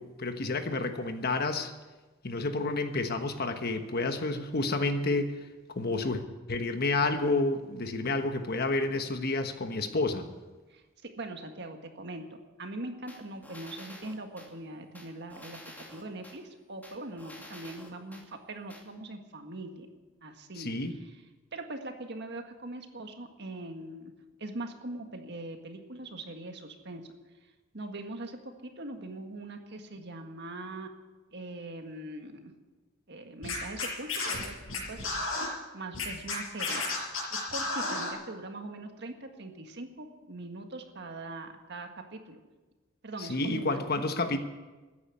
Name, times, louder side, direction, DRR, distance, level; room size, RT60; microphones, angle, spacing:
voice 1, 0.0-1.7 2.2-5.3 5.7-6.2 6.5-10.3 20.6-20.9 43.2-44.4, left 2 dB, 50° left, 7 dB, 1.2 m, -30 dB
voice 2, 10.7-19.9 20.2-21.2 21.5-24.1 24.4-27.1 27.7-30.9 31.3-32.5 33.1-35.5 35.7-36.9 37.3-42.4 43.0-43.8, right 2 dB, 55° right, 5 dB, 1.7 m, -42 dB
sound 1, 13.1-14.5 14.9-16.4 16.8-18.2 18.7-18.8, left 1 dB, 10° left, 2.5 m, -49 dB
Scratching (performance technique), 33.4-35.5 35.9-38.1, left 3 dB, 85° left, 5.5 m, -32 dB
14.0 x 10.0 x 8.5 m, 1.2 s
head